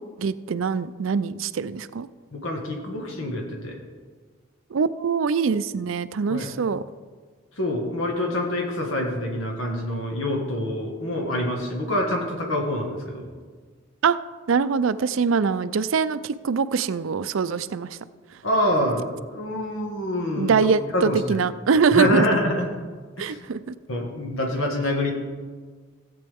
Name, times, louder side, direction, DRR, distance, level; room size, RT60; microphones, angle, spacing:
voice 1, 0.2-2.1 4.7-6.8 14.0-14.2 14.5-18.0 20.4-22.2 23.2-23.7, right 5 dB, 80° right, 14 dB, 0.4 m, -23 dB
voice 2, 2.3-3.8 6.3-6.5 7.6-13.3 18.4-20.6 20.9-21.4 21.9-22.7 23.2-23.4 23.9-25.1, left 1 dB, 90° left, 1 dB, 1.7 m, -26 dB
17.0 x 8.5 x 3.6 m, 1.5 s
head